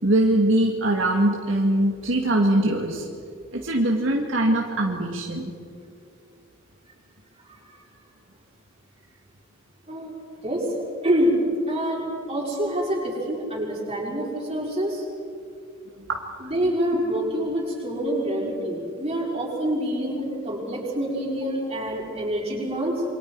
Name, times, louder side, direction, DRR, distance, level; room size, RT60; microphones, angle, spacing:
voice 1, 0.0-3.1 3.5-5.5 16.1-16.3, right 1 dB, 70° right, 0 dB, 2.0 m, -22 dB
voice 2, 10.4-10.7 11.0-11.4 11.7-15.0 16.4-23.0, equal, 30° right, -4 dB, 5.6 m, -26 dB
27.5 x 24.0 x 4.8 m, 2.5 s
head